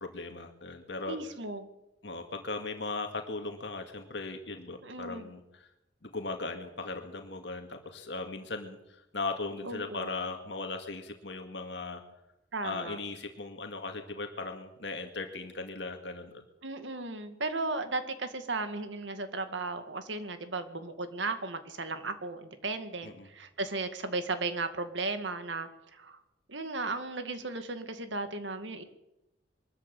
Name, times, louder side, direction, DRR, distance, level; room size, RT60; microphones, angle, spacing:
voice 1, 0.0-1.2 2.0-5.7 6.0-12.0 12.6-16.3 23.0-23.3, left 3 dB, 70° left, 5 dB, 2.2 m, -38 dB
voice 2, 1.1-1.7 4.8-5.3 9.6-10.1 12.5-13.0 16.6-26.2 26.5-28.8, right 3 dB, 85° right, 9 dB, 2.1 m, -35 dB
22.5 x 13.5 x 8.4 m, 0.91 s
head